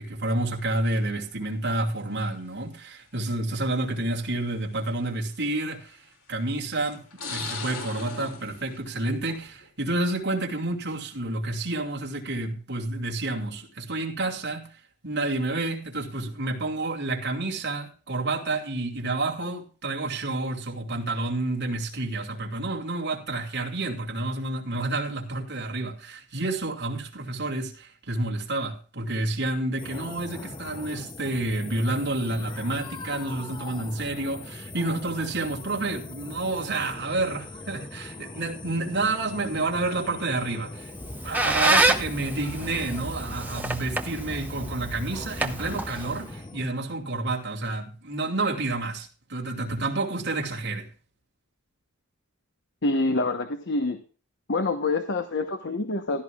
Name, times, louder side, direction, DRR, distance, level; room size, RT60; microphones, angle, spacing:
voice 1, 0.0-7.0 7.3-40.9 41.2-50.9, right 2 dB, 55° right, 2.5 m, -29 dB
sound 1, 0.9-1.3 2.4-2.5 3.6-3.7 4.2-4.3 5.7-6.1 6.8-9.7 10.0-10.5, left 4 dB, 90° left, 3.1 m, -39 dB
sound 2, 29.8-46.7, left 2 dB, 20° left, 0.6 m, -41 dB
Squeak, 40.8-46.3, right 2 dB, 10° right, 0.9 m, -27 dB
voice 2, 52.8-54.0 54.5-56.2, left 2 dB, 55° left, 1.0 m, -26 dB
15.5 x 13.0 x 2.4 m
head